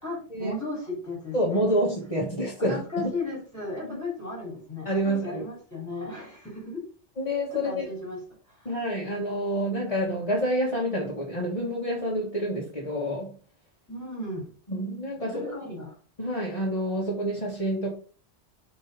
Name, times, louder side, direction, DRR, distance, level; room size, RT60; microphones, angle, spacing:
voice 1, 0.0-1.6 2.6-6.9 7.5-8.2 8.5-8.7 13.9-14.5 15.2-16.0, left 2 dB, 15° left, 3.6 m, -35 dB
voice 2, 1.3-3.1 3.8-4.0 4.9-5.4 7.2-7.9 8.7-13.3 14.7-15.7 16.2-17.9, equal, 30° left, 1.9 m, -28 dB
5.5 x 5.4 x 5.1 m
omnidirectional pair, 1.2 m